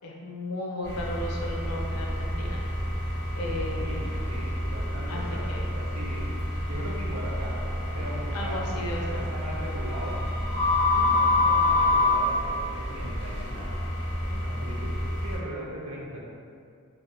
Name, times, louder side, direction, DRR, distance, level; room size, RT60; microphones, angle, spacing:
voice 1, 0.0-2.6 3.4-4.0 5.1-5.2 5.5-5.7 8.3-9.3 10.9-11.1, left 1 dB, 85° left, -1 dB, 0.5 m, -35 dB
sound 1, 0.8-15.4, left 2 dB, 20° left, 1.2 m, -28 dB
voice 2, 3.8-5.5 5.7-6.3 6.7-10.2 11.1-13.9 14.2-14.9 15.2-16.2, right 1 dB, 75° right, -3 dB, 0.6 m, -39 dB
3.3 x 2.6 x 2.2 m, 2.3 s
head